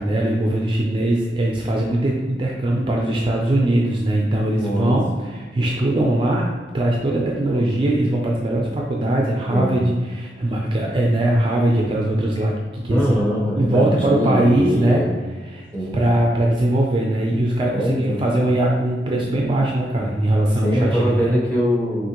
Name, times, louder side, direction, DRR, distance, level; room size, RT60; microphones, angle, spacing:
voice 1, 0.0-13.2 13.6-15.0 15.4-15.7 15.9-21.3, right 1 dB, 30° right, -1 dB, 0.4 m, -20 dB
voice 2, 4.6-4.9 9.5-9.8 12.9-15.2 15.7-16.0 17.7-18.2 20.6-22.1, equal, 10° left, -6 dB, 1.2 m, -22 dB
6.2 x 2.5 x 2.9 m, 1.4 s
head